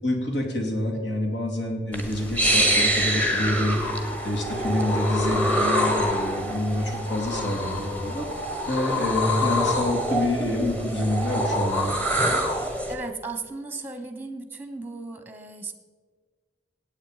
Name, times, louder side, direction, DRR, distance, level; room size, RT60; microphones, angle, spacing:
voice 1, 0.0-8.3 8.7-12.0, left 1 dB, 75° left, 1 dB, 2.7 m, -27 dB
sound 1, 1.9-12.9, equal, 10° left, 1.5 m, -26 dB
voice 2, 12.4-15.7, right 3 dB, 10° right, 8 dB, 1.0 m, -36 dB
16.5 x 8.9 x 5.0 m, 1.5 s
head